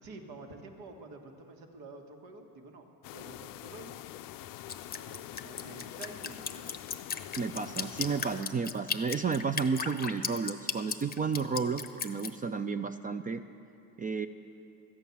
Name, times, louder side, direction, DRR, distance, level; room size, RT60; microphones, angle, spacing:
voice 1, 0.0-2.9 3.1-4.0 4.9-6.7, right 3 dB, 70° right, 4 dB, 1.6 m, -48 dB
sound 1, 3.0-8.4, left 14 dB, 60° left, 0.5 m, -45 dB
Drip, 4.7-12.3, left 6 dB, 25° left, 0.8 m, -35 dB
voice 2, 7.4-13.4 14.0-14.3, right 5 dB, 25° right, 9 dB, 0.4 m, -32 dB
13.5 x 9.0 x 7.0 m, 2.7 s
supercardioid pair, 85°, 39 cm